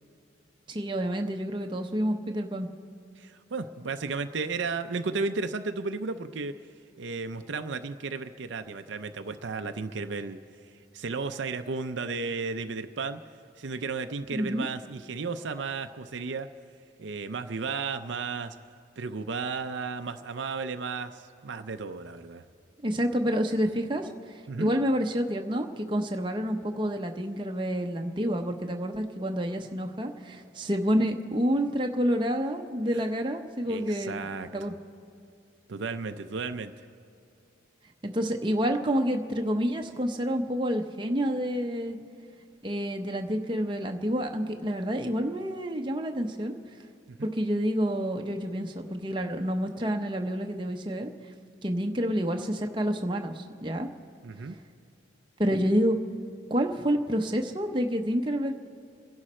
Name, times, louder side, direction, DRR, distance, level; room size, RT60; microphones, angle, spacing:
voice 1, 0.7-2.7 14.3-14.7 22.8-24.1 24.6-34.2 34.5-34.7 38.0-42.0 42.6-46.6 47.2-51.1 51.6-53.9 55.4-55.9 56.5-58.5, equal, 25° right, 3 dB, 0.8 m, -28 dB
voice 2, 3.2-6.5 7.0-10.4 10.9-13.2 13.6-16.5 17.0-18.6 19.0-22.4 24.5-24.7 32.9-33.0 33.7-34.5 35.7-36.7 47.1-47.3 54.2-54.6, right 4 dB, 70° right, 8 dB, 0.6 m, -34 dB
29.5 x 11.0 x 4.3 m, 2.5 s
head